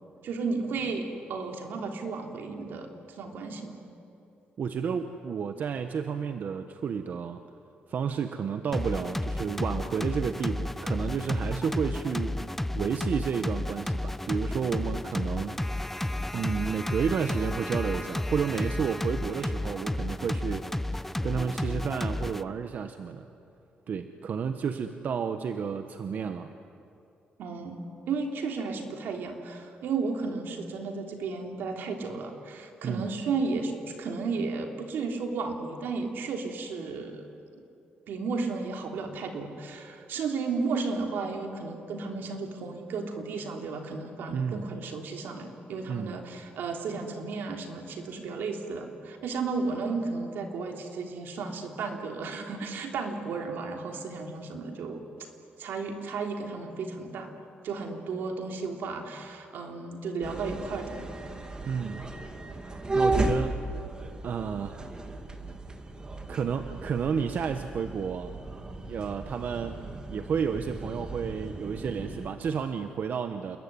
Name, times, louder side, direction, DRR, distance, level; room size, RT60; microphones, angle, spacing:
voice 1, 0.2-2.9 3.2-3.7 27.4-37.2 38.1-55.0 55.6-57.3 57.6-61.1, right 4 dB, 80° right, 3 dB, 3.4 m, -33 dB
voice 2, 4.6-7.4 7.9-12.4 12.8-15.6 16.3-20.7 20.9-23.3 23.9-26.5 32.8-33.1 44.3-44.6 45.9-46.1 61.6-62.1 62.7-63.6 64.2-64.8 66.3-68.3 68.9-69.8 70.1-73.6, right 6 dB, 55° right, 8 dB, 1.1 m, -31 dB
sound 1, 8.7-22.4, left 1 dB, 5° left, 0.7 m, -32 dB
sound 2, 60.2-72.3, right 2 dB, 25° right, 2.2 m, -34 dB
29.0 x 21.0 x 9.8 m, 2.7 s
cardioid pair, 120°, 3 cm